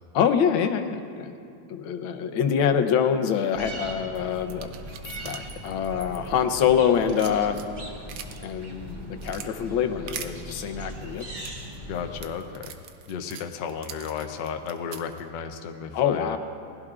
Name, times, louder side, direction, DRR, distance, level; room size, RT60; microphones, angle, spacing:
voice 1, 0.1-1.3 1.7-4.7 5.2-7.6 8.4-11.2 15.9-16.4, left 8 dB, 85° left, 7 dB, 1.6 m, -25 dB
sound 1, 3.5-12.2, right 1 dB, 25° right, 1.4 m, -40 dB
sound 2, 4.1-6.7 6.9-8.5 8.9-9.5 10.1-10.3 11.0-15.2, right 9 dB, 85° right, 1.5 m, -42 dB
voice 2, 11.9-12.8 13.1-16.4, left 7 dB, 70° left, 6 dB, 1.2 m, -33 dB
20.0 x 15.5 x 2.4 m, 2.4 s
omnidirectional pair, 2.2 m